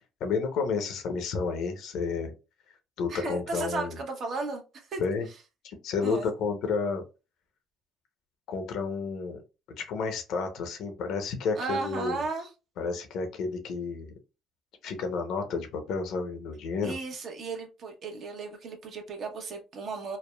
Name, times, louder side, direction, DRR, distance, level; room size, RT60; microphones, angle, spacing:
voice 1, 0.2-2.3 3.0-4.0 5.0-5.3 5.6-7.0 8.5-9.4 9.8-12.2 12.8-14.1 14.8-17.0, left 4 dB, 70° left, 0.7 m, -31 dB
voice 2, 3.1-5.0 6.0-6.3 11.6-12.5 16.8-20.2, right 3 dB, 55° right, 0.8 m, -35 dB
3.2 x 2.1 x 2.2 m
supercardioid pair, 70°, 0 cm